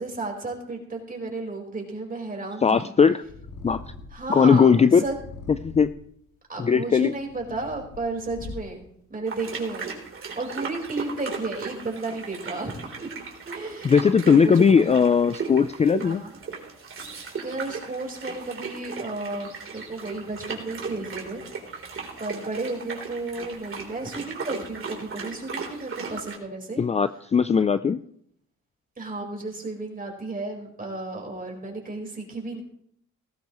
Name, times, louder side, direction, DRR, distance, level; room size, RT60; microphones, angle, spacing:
voice 1, 0.0-2.9 4.1-5.1 6.5-8.8 9.1-9.9 10.3-13.1 13.5-14.0 14.3-15.0 16.0-16.4 17.4-21.4 22.2-26.8 29.0-32.6, right 3 dB, 30° right, 0 dB, 4.5 m, -33 dB
voice 2, 2.6-3.2 3.6-3.8 4.3-5.0 5.5-5.9 6.6-7.1 13.8-16.2 26.8-28.0, left 6 dB, 20° left, 13 dB, 0.4 m, -19 dB
Purr, 3.2-4.3 5.0-6.1 6.8-8.9, left 3 dB, 80° left, 3.0 m, -42 dB
sound 1, 9.3-26.4, right 4 dB, 45° right, 3.7 m, -37 dB
18.0 x 15.0 x 3.1 m, 0.70 s
cardioid pair, 90°, 30 cm